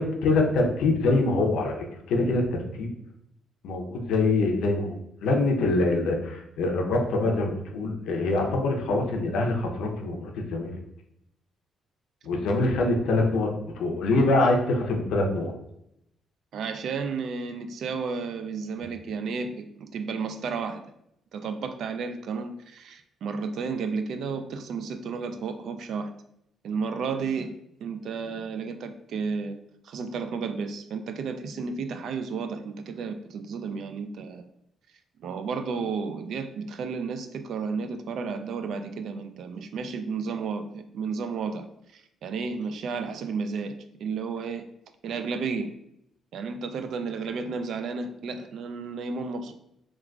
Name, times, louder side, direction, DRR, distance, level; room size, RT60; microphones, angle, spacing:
voice 1, 0.0-1.7 2.1-2.9 3.6-10.8 12.2-15.5, left 2 dB, 85° left, 2 dB, 0.6 m, -24 dB
voice 2, 16.5-20.8 21.3-26.1 26.6-29.6 29.8-34.4 35.2-41.7 41.9-44.7 45.0-45.7 46.3-49.5, right 5 dB, 70° right, 8 dB, 0.3 m, -32 dB
3.7 x 2.3 x 2.3 m, 0.77 s
cardioid pair, 90°, 0 cm